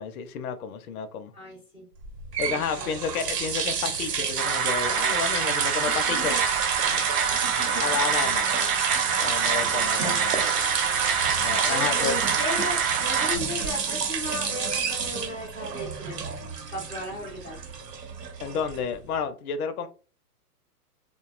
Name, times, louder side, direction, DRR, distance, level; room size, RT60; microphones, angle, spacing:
voice 1, 0.0-1.3 2.4-6.4 7.5-8.5 9.2-10.4 11.4-12.1 18.4-19.9, left 7 dB, 65° left, 0.6 m, -31 dB
voice 2, 1.3-1.9 2.4-3.1 5.8-6.4 7.4-7.8 9.9-10.2 11.7-16.3 16.7-17.6, left 1 dB, 10° right, 0.3 m, -36 dB
sound 1, 2.0-19.1, right 6 dB, 85° right, 0.8 m, -30 dB
sound 2, 4.4-13.4, right 7 dB, 55° right, 0.6 m, -26 dB
2.7 x 2.2 x 2.4 m
hypercardioid pair, 120°, 48 cm